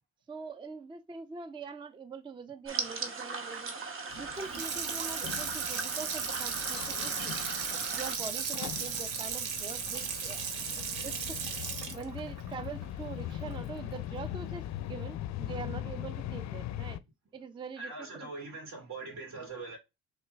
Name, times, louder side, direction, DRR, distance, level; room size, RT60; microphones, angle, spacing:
voice 1, 0.3-3.7 4.1-7.4 7.9-10.5 11.0-11.6 11.9-17.0 17.3-18.3, right 5 dB, 15° right, 0.4 m, -43 dB
sound 1, 2.7-8.2, right 4 dB, 45° right, 0.9 m, -39 dB
sound 2, 4.1-17.0, left 12 dB, 65° left, 0.4 m, -41 dB
Water tap faucet / Sink (filling or washing), 4.3-13.6 14.0-14.1, right 6 dB, 90° right, 0.9 m, -36 dB
voice 2, 17.8-19.8, right 3 dB, 70° right, 2.8 m, -42 dB
5.8 x 3.3 x 2.3 m
cardioid pair, 90°, 30 cm